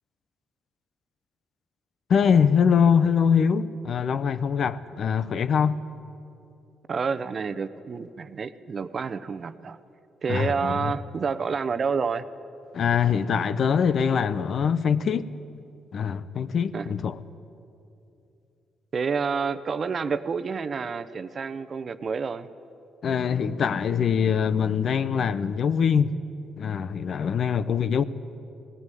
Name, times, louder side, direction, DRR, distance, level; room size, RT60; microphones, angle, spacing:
voice 1, 2.1-5.8 10.3-10.9 12.7-15.2 15.9-17.2 23.0-26.1 26.6-28.0, left 7 dB, 55° left, 0.7 m, -23 dB
voice 2, 6.9-9.8 10.2-12.2 16.7-16.9 18.9-22.5, right 5 dB, 45° right, 0.8 m, -29 dB
18.5 x 15.5 x 9.2 m
cardioid pair, 90°, 0 cm